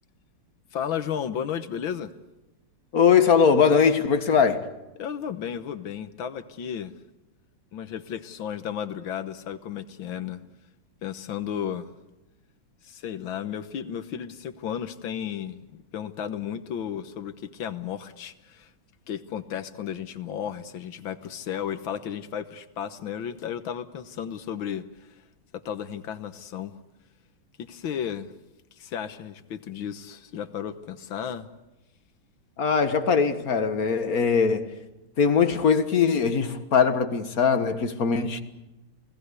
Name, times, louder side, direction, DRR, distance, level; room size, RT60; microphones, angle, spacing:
voice 1, 0.7-2.1 5.0-6.9 7.7-10.4 11.0-11.9 12.8-18.7 19.1-24.8 25.7-26.7 27.6-28.3 28.8-31.5, left 8 dB, 70° left, 1.8 m, -33 dB
voice 2, 2.9-4.6 32.6-34.7 35.2-38.4, left 6 dB, 45° left, 1.8 m, -21 dB
29.0 x 19.0 x 8.3 m
omnidirectional pair, 2.4 m